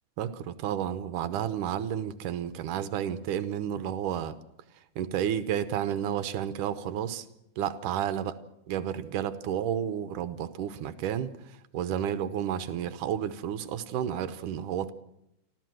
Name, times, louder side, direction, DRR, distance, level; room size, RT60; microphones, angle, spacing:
voice 1, 0.2-4.4 5.0-7.3 7.6-8.4 8.7-14.9, right 9 dB, 75° right, 12 dB, 2.4 m, -31 dB
28.5 x 13.0 x 7.7 m, 0.83 s
omnidirectional pair, 3.7 m